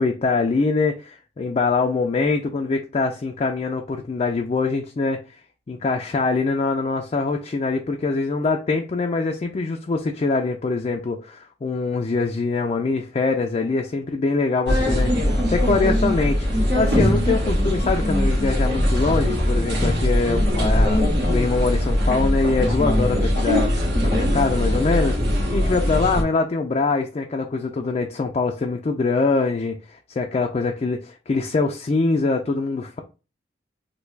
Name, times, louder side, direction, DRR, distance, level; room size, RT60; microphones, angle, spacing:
voice 1, 0.0-5.2 5.7-16.5 16.7-25.2 25.5-33.0, left 3 dB, 35° left, 0.3 m, -23 dB
sound 1, 14.7-26.2, equal, 80° right, 1.7 m, -21 dB
3.3 x 2.2 x 3.2 m
head